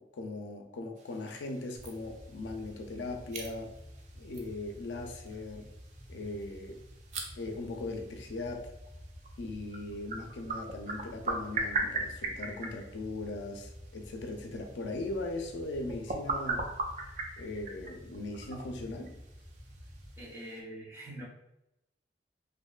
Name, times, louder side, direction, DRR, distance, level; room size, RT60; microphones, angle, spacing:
voice 1, 0.0-3.7 4.2-5.7 6.1-6.8 7.4-8.7 9.4-16.7 17.4-19.1, left 2 dB, 90° left, 3 dB, 0.4 m, -39 dB
sound 1, 1.0-20.6, right 3 dB, 40° right, 0.3 m, -41 dB
sound 2, 1.8-20.2, equal, 30° left, 0.6 m, -50 dB
voice 2, 20.2-21.2, right 1 dB, 15° right, -8 dB, 0.8 m, -44 dB
2.5 x 2.1 x 2.3 m, 0.87 s
head